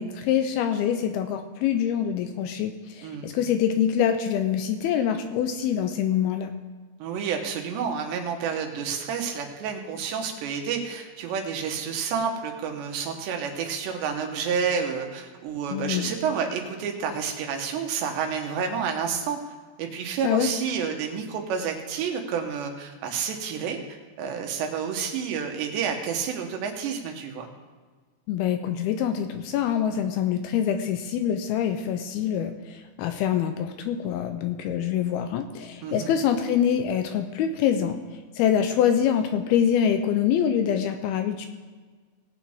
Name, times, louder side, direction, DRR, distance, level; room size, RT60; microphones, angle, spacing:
voice 1, 0.0-6.5 15.7-16.1 20.2-20.5 28.3-38.0 38.4-41.5, left 9 dB, 80° left, 8 dB, 2.3 m, -25 dB
voice 2, 7.0-19.4 19.8-27.5 35.8-36.1, right 6 dB, 90° right, 3 dB, 3.5 m, -29 dB
18.5 x 8.6 x 3.6 m, 1.4 s
omnidirectional pair, 4.8 m